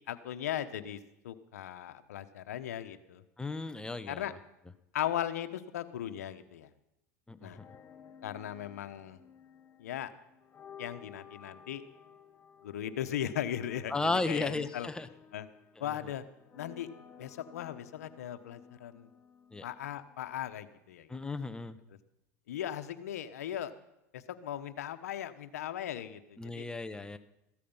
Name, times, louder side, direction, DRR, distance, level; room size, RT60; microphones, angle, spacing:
voice 1, 0.1-1.0 1.2-3.2 4.1-4.3 4.9-6.7 7.4-7.6 8.2-9.2 9.8-10.1 10.8-11.8 12.6-14.9 15.3-15.5 15.8-16.2 16.5-16.9 17.2-19.1 19.6-21.1 22.5-23.7 24.1-26.7, left 11 dB, 90° left, 10 dB, 1.1 m, -38 dB
voice 2, 3.4-4.4 7.3-7.5 13.9-15.1 15.8-15.9 19.5-19.7 21.1-21.8 26.4-27.2, left 3 dB, 10° left, 10 dB, 1.0 m, -34 dB
sound 1, 7.4-20.3, left 7 dB, 30° left, 1.5 m, -55 dB
15.0 x 13.5 x 5.6 m, 0.87 s
supercardioid pair, 100°, 8 cm